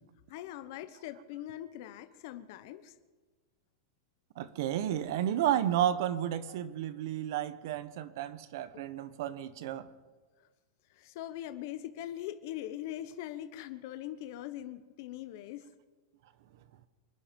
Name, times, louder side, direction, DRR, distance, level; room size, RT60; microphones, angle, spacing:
voice 1, 0.3-2.9 8.7-8.9 10.4-10.5 10.9-15.6, left 12 dB, 45° left, 10 dB, 1.0 m, -42 dB
voice 2, 4.4-9.9, right 11 dB, 55° right, 15 dB, 1.0 m, -32 dB
25.5 x 10.5 x 5.2 m, 1.3 s
supercardioid pair, 170°, 2 cm